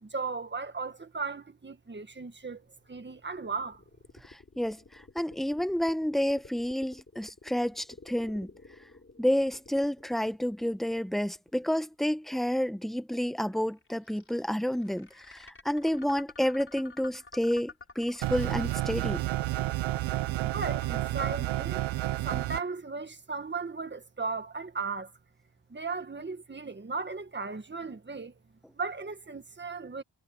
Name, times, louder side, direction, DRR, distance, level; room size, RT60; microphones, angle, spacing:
voice 1, 0.0-3.8 20.4-21.9 22.3-25.1 25.7-28.3 28.8-30.0, right 4 dB, 25° right, 1.8 m, -36 dB
sound 1, 2.3-12.2 13.5-21.2, left 3 dB, 25° left, 4.3 m, -53 dB
voice 2, 4.2-8.5 9.2-19.2, equal, ahead, 0.9 m, -30 dB
sound 2, 18.2-22.6, right 16 dB, 85° right, 0.6 m, -30 dB
wide cardioid pair, 105°, 46 cm